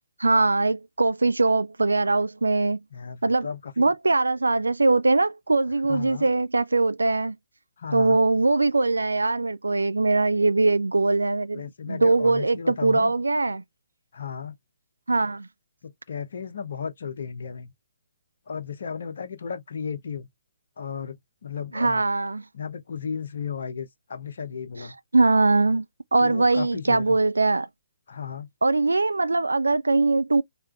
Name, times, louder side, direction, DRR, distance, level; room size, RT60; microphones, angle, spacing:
voice 1, 0.2-2.8 3.2-3.5 3.8-7.4 7.9-13.6 15.1-15.5 21.7-22.4 24.8-24.9 25.1-25.9 26.1-27.7 28.6-30.4, right 3 dB, 75° right, 0.4 m, -22 dB
voice 2, 2.9-3.9 5.9-6.3 7.8-8.2 11.5-13.1 14.1-14.5 15.8-17.7 18.5-20.3 20.8-21.2 21.4-22.0 22.5-24.9 26.2-27.2 28.1-28.5, left 6 dB, 55° left, 0.7 m, -34 dB
4.7 x 2.8 x 2.3 m
figure-of-eight pair, 130°, 0 cm